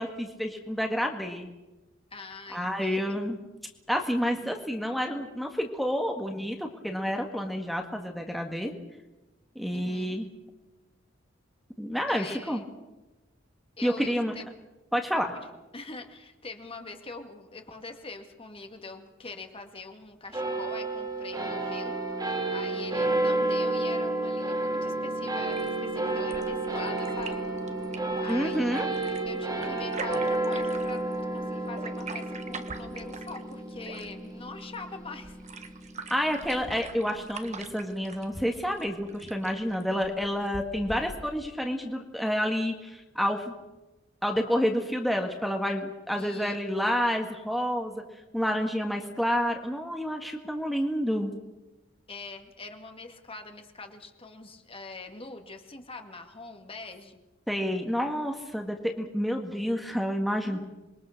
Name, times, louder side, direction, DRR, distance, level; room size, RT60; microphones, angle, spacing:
voice 1, 0.0-1.5 2.5-3.4 3.9-8.7 9.6-10.3 11.8-12.6 13.8-14.3 14.9-15.3 28.3-28.9 36.1-43.5 44.2-48.0 48.3-51.3 57.5-60.6, equal, ahead, 2 dB, 1.8 m, -29 dB
voice 2, 2.1-3.0 9.7-10.2 12.1-12.6 13.8-14.4 15.3-15.4 15.7-22.0 22.5-27.4 28.2-31.0 31.3-35.4 46.2-46.6 48.9-49.2 52.1-57.2 60.4-60.6, left 3 dB, 30° left, 5 dB, 2.1 m, -43 dB
sound 1, 20.3-37.0, right 2 dB, 20° right, 3.4 m, -31 dB
sound 2, 25.5-41.5, right 4 dB, 35° right, 1.6 m, -44 dB
26.5 x 22.0 x 6.6 m, 1.1 s
head